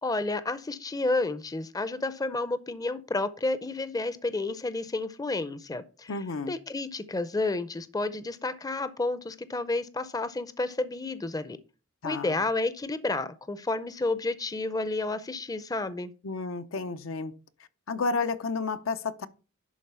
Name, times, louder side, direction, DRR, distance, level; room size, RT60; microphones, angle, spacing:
voice 1, 0.0-6.1 6.5-11.6 12.0-16.1, left 2 dB, 20° left, 0.5 m, -31 dB
voice 2, 6.1-6.6 12.0-12.4 16.2-17.3 17.9-19.3, left 4 dB, 75° left, 0.6 m, -31 dB
11.0 x 3.9 x 5.5 m
head